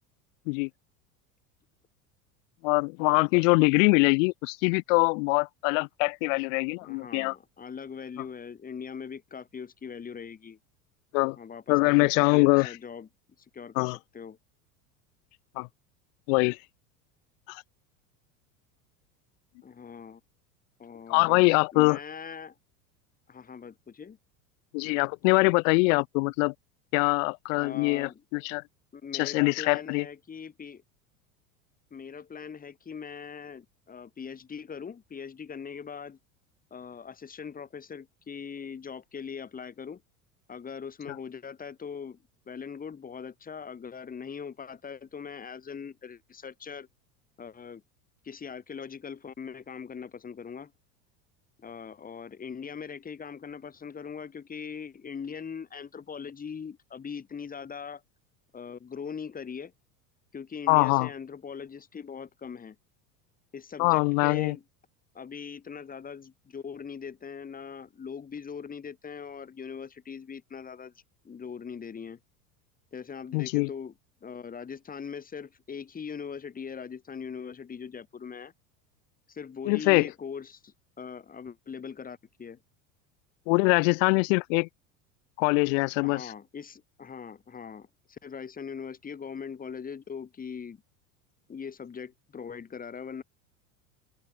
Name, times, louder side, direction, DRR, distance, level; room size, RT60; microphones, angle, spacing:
voice 1, 2.6-7.3 11.1-11.4 11.7-12.7 13.8-14.0 15.6-15.7 16.3-16.6 17.5-17.6 21.1-22.0 24.7-26.5 26.9-28.6 29.1-30.1 60.7-61.1 63.8-64.6 73.3-73.7 79.7-80.1 83.5-84.7 85.4-86.3, left 31 dB, 60° left, 0.7 m, -23 dB
voice 2, 6.8-10.6 11.4-13.1 13.4-14.4 19.6-20.2 20.8-21.5 21.7-22.6 23.3-24.2 27.6-28.2 28.9-30.8 31.9-36.2 36.7-40.0 40.5-42.2 42.5-46.9 47.4-47.8 48.2-50.7 51.6-58.0 58.5-59.7 60.3-62.8 63.5-64.6 65.1-70.9 71.2-72.2 72.9-73.9 74.2-78.5 79.3-82.6 86.0-90.8 91.5-93.2, left 6 dB, 20° left, 1.3 m, -41 dB
open air
hypercardioid pair, 95°, 43 cm